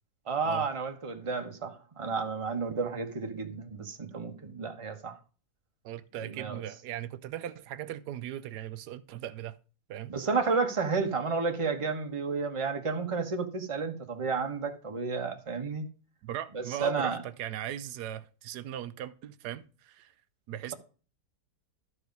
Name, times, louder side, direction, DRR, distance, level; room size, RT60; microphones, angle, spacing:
voice 1, 0.3-5.2 6.2-6.6 10.1-15.9 16.5-17.2, right 4 dB, 20° right, 1.1 m, -31 dB
voice 2, 5.8-9.6 9.9-10.1 16.2-20.1 20.5-20.7, right 11 dB, 85° right, 1.2 m, -38 dB
12.0 x 4.9 x 5.2 m
omnidirectional pair, 1.7 m